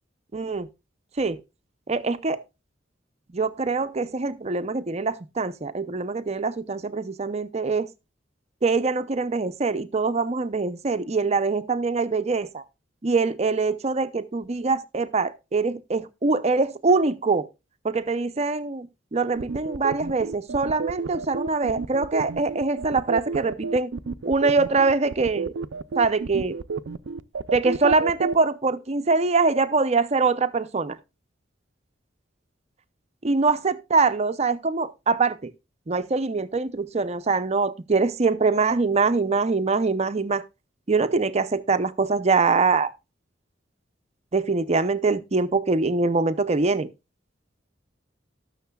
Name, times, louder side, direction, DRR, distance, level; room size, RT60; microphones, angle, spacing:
voice 1, 0.3-0.7 1.2-1.4 1.9-2.4 3.3-7.9 8.6-12.6 13.0-17.5 17.8-23.9 24.2-25.5 26.0-26.6 27.5-31.0 33.2-35.5 35.9-40.4 40.9-42.9 44.3-46.9, right 4 dB, 35° right, 0.6 m, -23 dB
sound 1, 19.3-28.3, right 4 dB, 85° right, 0.5 m, -30 dB
19.0 x 6.5 x 2.3 m
head